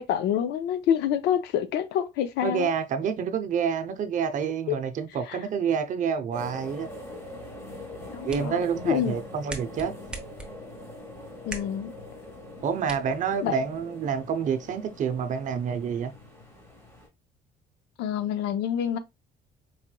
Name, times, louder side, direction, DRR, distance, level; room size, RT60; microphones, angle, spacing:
voice 1, 0.0-2.7 4.7-4.8 5.3-5.4 8.1-9.1 11.5-11.9 13.4-13.5 18.0-19.0, left 9 dB, 85° left, 0.6 m, -27 dB
voice 2, 2.4-6.9 8.3-9.9 12.6-16.1, right 7 dB, 50° right, 0.6 m, -28 dB
sound 1, 6.3-17.1, left 1 dB, 15° left, 1.4 m, -43 dB
sound 2, 8.0-13.9, right 2 dB, 5° right, 0.8 m, -45 dB
4.7 x 3.0 x 2.2 m
cardioid pair, 110°, 17 cm